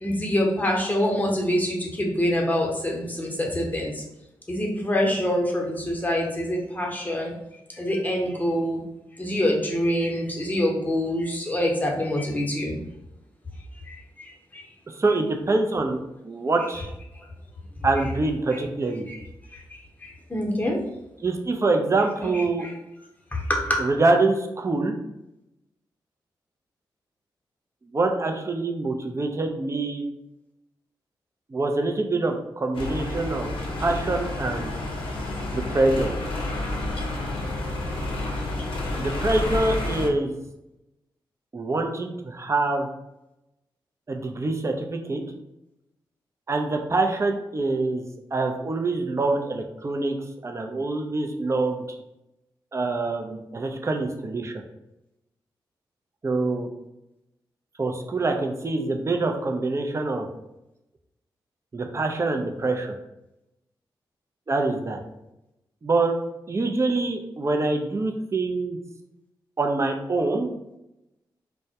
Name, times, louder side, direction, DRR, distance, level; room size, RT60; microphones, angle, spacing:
voice 1, 0.0-3.9 4.5-7.3 7.8-8.8 9.2-12.8 14.5-14.6 19.1-19.2 20.3-20.8 22.2-22.7 23.3-23.8, left 1 dB, 20° left, -1 dB, 0.8 m, -25 dB
voice 2, 15.0-16.0 16.2-16.9 17.8-19.1 21.2-22.7 23.8-24.9 27.9-30.0 31.5-33.5 33.8-34.7 35.5-36.1 39.0-40.3 41.5-42.9 44.1-45.2 46.5-48.0 48.3-50.2 50.4-51.8 52.7-54.6 56.2-56.7 57.8-60.3 61.7-62.9 64.5-65.0 65.8-66.1 66.5-68.8 69.6-70.5, right 2 dB, 30° right, 3 dB, 0.4 m, -25 dB
sound 1, 32.7-40.1, left 2 dB, 75° left, 0.5 m, -30 dB
2.1 x 2.1 x 2.7 m, 0.89 s
supercardioid pair, 45°, 9 cm